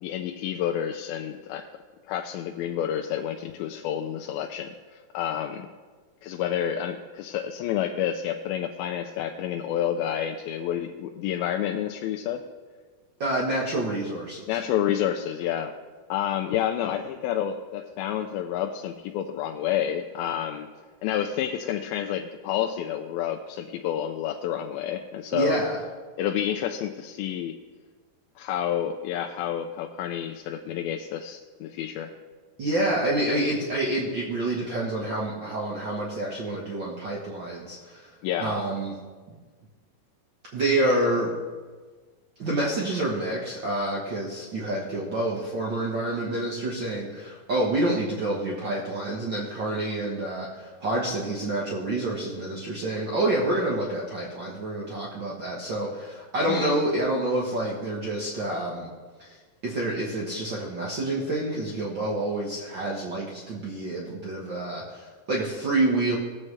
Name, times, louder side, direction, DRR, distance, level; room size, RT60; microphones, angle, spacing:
voice 1, 0.0-1.7 2.1-5.7 6.2-12.4 14.5-15.8 16.1-20.7 21.0-25.6 26.2-27.6 28.4-32.1 38.2-38.6 56.5-56.8, left 10 dB, 85° left, 3 dB, 2.4 m, -29 dB
voice 2, 13.2-14.6 25.3-25.8 32.6-38.1 38.4-38.9 40.5-41.3 42.4-58.9 59.2-59.4 59.6-66.2, right 1 dB, 90° right, -4 dB, 1.0 m, -28 dB
19.0 x 7.5 x 3.2 m, 1.4 s
omnidirectional pair, 4.2 m